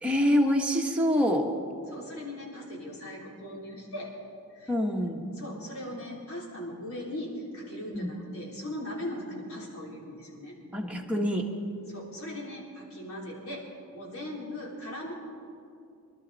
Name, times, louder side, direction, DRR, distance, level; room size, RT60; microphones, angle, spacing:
voice 1, 0.0-1.5 4.7-5.3 7.9-8.1 10.7-11.5, equal, 5° right, -1 dB, 1.2 m, -25 dB
voice 2, 1.9-4.1 4.5-4.7 5.4-10.6 11.9-13.6 13.9-15.1, left 1 dB, 75° left, -3 dB, 3.6 m, -39 dB
24.5 x 12.0 x 4.1 m, 2.4 s
head